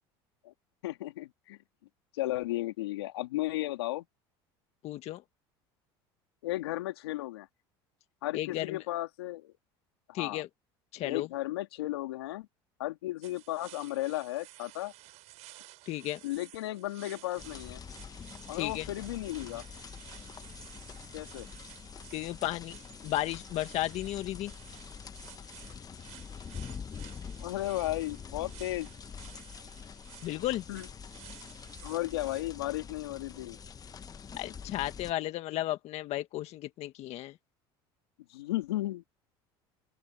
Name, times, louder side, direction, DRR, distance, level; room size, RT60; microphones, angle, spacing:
voice 1, 0.8-1.6 2.1-4.0 6.4-7.5 8.2-9.5 10.1-10.4 11.0-12.5 12.8-14.9 16.2-17.8 18.5-19.6 21.1-21.5 27.4-28.9 30.7-30.9 31.8-33.6 38.3-39.0, left 16 dB, 85° left, 2.9 m, -34 dB
voice 2, 4.8-5.2 8.3-8.8 10.1-10.5 10.9-11.3 15.8-16.2 18.5-18.9 22.1-22.8 23.0-24.5 30.2-30.6 34.4-37.4, left 15 dB, 55° left, 1.6 m, -34 dB
sound 1, 13.2-32.4, right 18 dB, 60° right, 4.8 m, -54 dB
sound 2, 17.4-35.1, left 6 dB, 30° left, 1.4 m, -46 dB
open air
supercardioid pair, 90°, 13 cm